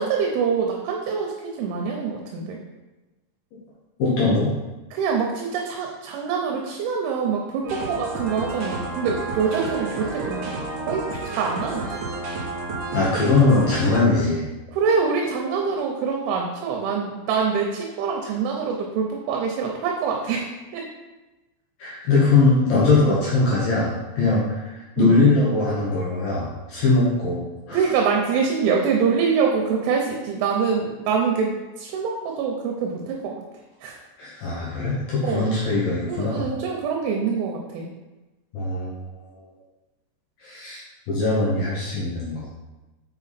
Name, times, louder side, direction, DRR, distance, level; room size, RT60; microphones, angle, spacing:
voice 1, 0.0-1.3 1.6-2.6 4.9-10.6 10.9-11.9 14.7-20.9 25.0-25.3 27.7-33.4 33.8-34.0 35.2-35.5 36.1-37.9, right 5 dB, 80° right, 1 dB, 3.0 m, -25 dB
voice 2, 4.0-4.5 12.9-14.5 21.8-27.8 34.2-36.5 38.5-38.9 40.4-40.8 41.1-42.5, left 3 dB, 75° left, -7 dB, 2.2 m, -21 dB
sound 1, 7.6-14.0, right 2 dB, 55° right, 2.8 m, -31 dB
7.9 x 5.5 x 4.1 m, 1.1 s
omnidirectional pair, 6.0 m